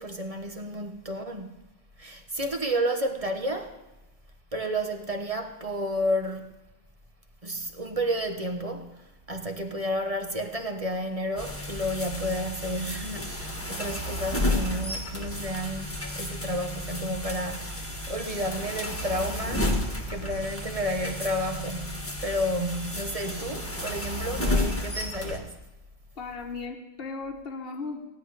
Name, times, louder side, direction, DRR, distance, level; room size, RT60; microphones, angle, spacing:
voice 1, 0.0-1.6 2.0-3.8 4.5-6.5 7.4-19.7 20.1-25.6, equal, 30° right, 1.1 m, -31 dB
sound 1, 11.4-25.4, left 1 dB, 10° left, 1.5 m, -32 dB
voice 2, 26.2-28.1, left 4 dB, 50° left, 1.4 m, -36 dB
16.5 x 5.5 x 9.8 m
omnidirectional pair, 1.3 m